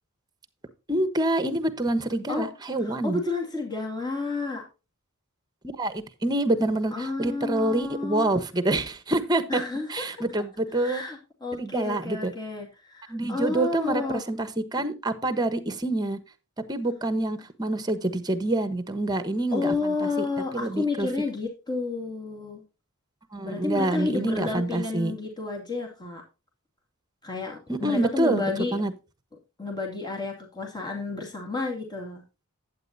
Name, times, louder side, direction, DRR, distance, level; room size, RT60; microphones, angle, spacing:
voice 1, 0.9-3.2 5.8-9.6 9.9-11.0 11.5-12.3 13.1-16.2 16.7-20.3 20.5-21.1 23.3-25.1 27.7-28.9, right 1 dB, 20° right, 12 dB, 1.1 m, -27 dB
voice 2, 2.8-4.6 6.9-8.3 9.5-10.2 10.7-14.2 19.5-22.6 23.4-26.2 27.2-28.8 29.6-32.2, left 3 dB, 20° left, 0 dB, 2.5 m, -31 dB
11.5 x 8.8 x 2.7 m, 0.29 s
head